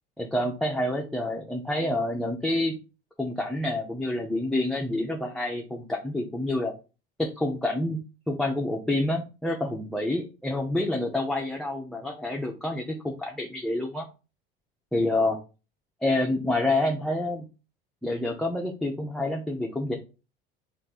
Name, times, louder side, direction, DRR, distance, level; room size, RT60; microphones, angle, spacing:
voice 1, 0.2-2.8 3.2-6.7 7.2-8.0 8.3-14.1 14.9-15.4 16.0-17.4 18.0-19.9, left 1 dB, ahead, 1 dB, 0.6 m, -28 dB
3.3 x 2.7 x 4.1 m, 0.32 s
hypercardioid pair, 75°, 30 cm